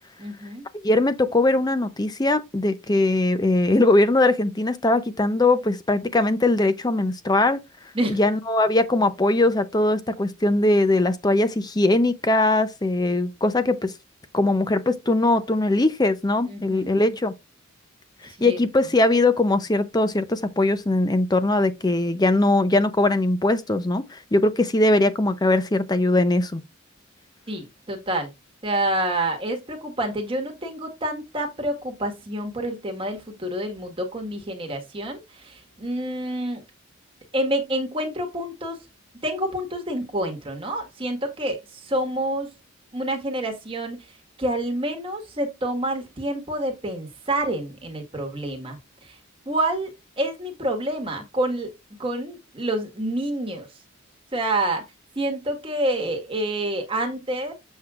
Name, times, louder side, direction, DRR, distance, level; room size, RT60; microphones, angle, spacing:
voice 1, 0.2-0.6 7.9-8.2 16.5-16.9 18.4-18.6 27.5-28.3 28.6-36.6 37.3-38.8 39.2-42.5 42.9-44.1 44.4-49.2 49.4-51.7 52.0-53.7 54.3-54.8 55.1-57.5, right 1 dB, 25° right, 1.6 m, -28 dB
voice 2, 0.8-7.6 8.1-13.9 14.3-17.3 18.4-26.6, left 2 dB, 20° left, 0.5 m, -21 dB
7.6 x 6.3 x 2.4 m
head